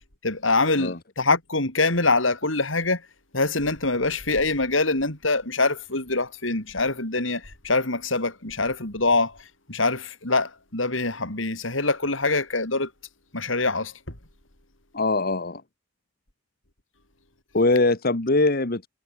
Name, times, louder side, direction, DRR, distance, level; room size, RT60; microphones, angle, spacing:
voice 1, 0.2-3.1 3.3-12.9 13.3-14.2, left 3 dB, 90° left, 6.2 m, -24 dB
voice 2, 14.9-15.6 17.5-18.9, left 2 dB, 50° left, 1.6 m, -22 dB
head